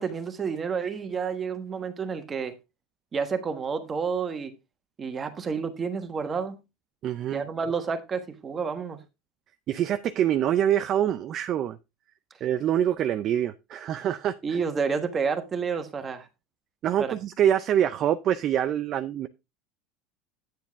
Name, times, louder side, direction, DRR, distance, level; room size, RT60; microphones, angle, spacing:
voice 1, 0.0-2.5 3.1-4.5 5.0-6.6 7.3-9.0 14.4-16.3 17.0-17.1, right 5 dB, 20° right, 1.4 m, -30 dB
voice 2, 7.0-7.5 9.7-11.8 12.4-14.3 16.8-19.3, right 10 dB, 40° right, 0.5 m, -25 dB
9.2 x 7.3 x 3.5 m
supercardioid pair, 140°, 0 cm